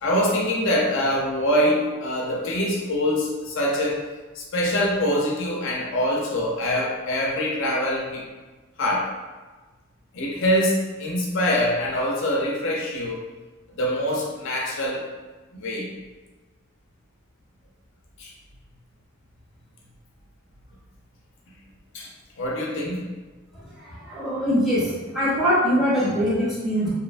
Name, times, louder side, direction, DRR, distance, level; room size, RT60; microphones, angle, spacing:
voice 1, 0.0-4.1 4.3-8.3 8.8-9.1 10.1-13.2 13.7-15.1 15.5-15.9 18.2-18.3 21.9-22.1 22.4-23.1, equal, 55° left, -2 dB, 0.5 m, -24 dB
voice 2, 23.5-26.9, equal, ahead, -11 dB, 0.9 m, -23 dB
2.7 x 2.2 x 2.4 m, 1.3 s
head